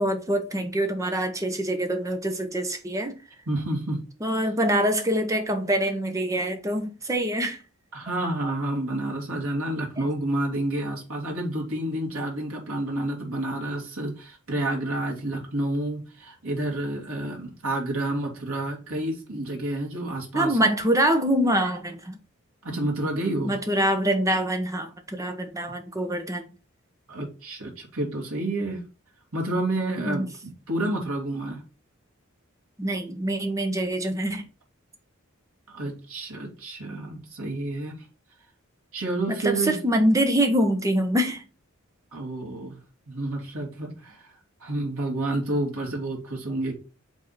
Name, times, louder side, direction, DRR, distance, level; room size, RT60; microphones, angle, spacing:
voice 1, 0.0-3.2 4.2-7.6 20.3-22.2 23.5-26.5 30.0-30.3 32.8-34.4 39.3-41.4, right 1 dB, 15° right, 1.0 m, -25 dB
voice 2, 3.5-4.0 7.9-20.8 22.6-23.6 27.1-28.8 29.3-31.6 35.7-38.0 38.9-39.8 42.1-42.8 43.1-44.3 44.6-46.7, right 1 dB, 85° right, 2.6 m, -29 dB
5.2 x 3.7 x 5.7 m
head